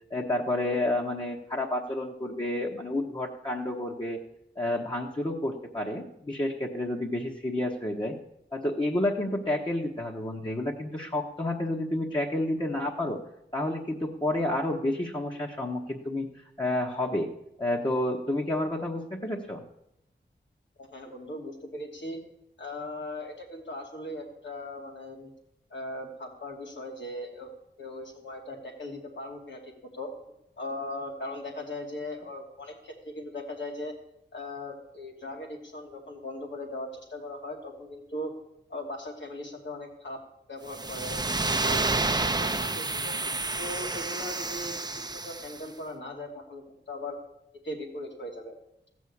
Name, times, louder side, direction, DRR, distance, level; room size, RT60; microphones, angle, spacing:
voice 1, 0.1-4.2 4.6-8.2 8.5-13.2 13.5-16.3 16.6-17.3 17.6-19.6, left 1 dB, 25° left, -2 dB, 1.1 m, -30 dB
voice 2, 20.8-22.2 22.6-25.3 25.7-27.5 27.8-30.1 30.6-33.9 34.3-38.3 38.7-40.2 40.5-41.2 41.5-43.2 43.6-47.2 47.6-48.5, left 1 dB, 80° left, 1 dB, 2.5 m, -39 dB
sound 1, 40.7-45.6, right 3 dB, 20° right, 0.7 m, -29 dB
15.5 x 6.3 x 8.5 m, 0.82 s
wide cardioid pair, 95°, 19 cm